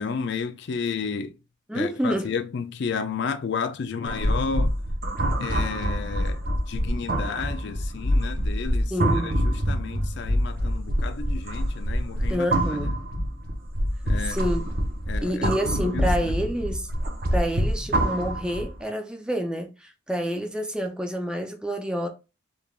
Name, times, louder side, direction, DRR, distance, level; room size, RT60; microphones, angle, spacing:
voice 1, 0.0-1.4 1.7-4.7 5.4-8.9 9.2-12.5 12.8-12.9 14.0-14.5 15.1-16.3, left 5 dB, 55° left, 0.4 m, -32 dB
voice 2, 1.7-2.3 8.9-9.3 12.3-12.9 14.2-14.6 15.2-16.9 17.3-22.1, equal, 5° right, 0.5 m, -28 dB
sound 1, 4.0-18.8, equal, 50° right, 0.9 m, -26 dB
3.7 x 3.3 x 2.4 m
head